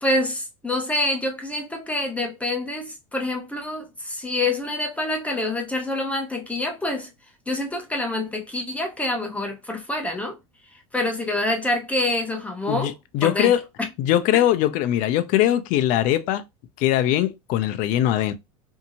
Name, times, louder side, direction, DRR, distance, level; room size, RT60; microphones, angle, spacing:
voice 1, 0.0-7.1 7.5-10.4 10.9-12.9 13.2-13.5 13.8-13.9 14.3-14.4, left 2 dB, 10° left, 0.7 m, -26 dB
voice 2, 12.7-13.6 14.0-16.4 16.8-18.3, left 12 dB, 50° left, 0.5 m, -21 dB
2.7 x 2.7 x 2.6 m
supercardioid pair, 115°, 17 cm